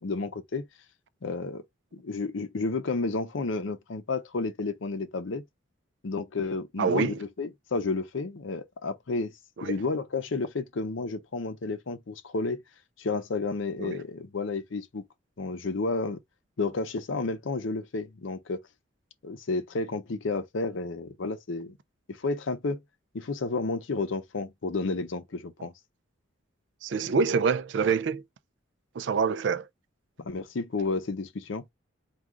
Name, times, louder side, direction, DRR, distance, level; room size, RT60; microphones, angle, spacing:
voice 1, 0.0-0.6 1.2-1.6 1.9-5.4 6.0-9.3 9.6-12.6 13.0-15.0 15.4-16.2 16.6-18.6 19.2-21.8 22.1-22.8 23.1-25.7 30.2-31.6, left 3 dB, 70° left, 0.6 m, -31 dB
voice 2, 6.8-7.2 9.6-9.8 13.8-14.0 26.8-28.2 28.9-29.7, right 5 dB, 60° right, 0.4 m, -26 dB
3.7 x 2.3 x 4.5 m
head